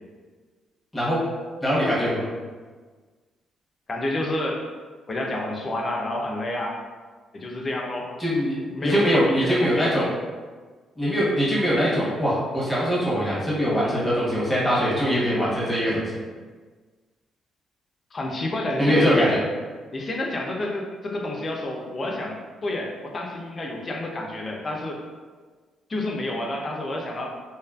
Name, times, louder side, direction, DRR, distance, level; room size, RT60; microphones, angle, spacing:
voice 1, 1.6-2.3 8.2-10.1 11.0-16.0 18.8-19.4, equal, 10° left, -7 dB, 0.9 m, -22 dB
voice 2, 3.9-4.7 5.1-6.8 7.3-8.1 8.7-9.9 18.1-19.3 19.9-22.4 22.6-25.0 25.9-27.4, left 1 dB, 35° left, 0 dB, 0.5 m, -29 dB
2.6 x 2.4 x 2.3 m, 1.4 s
cardioid pair, 90°, 0 cm